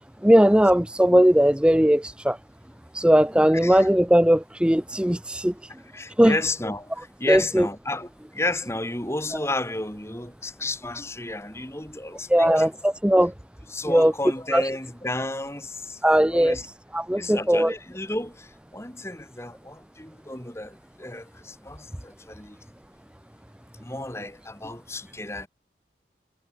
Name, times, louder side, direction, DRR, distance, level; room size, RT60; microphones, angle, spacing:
voice 1, 0.2-2.4 2.9-5.7 6.2-6.3 7.3-7.7 12.3-13.3 13.9-14.1 14.5-14.6 16.0-16.6 16.9-17.7, equal, 5° right, 0.6 m, -19 dB
voice 2, 3.5-3.9 5.8-12.7 13.7-16.0 16.3-16.7 17.2-22.6 23.8-25.5, left 2 dB, 15° left, 2.6 m, -32 dB
head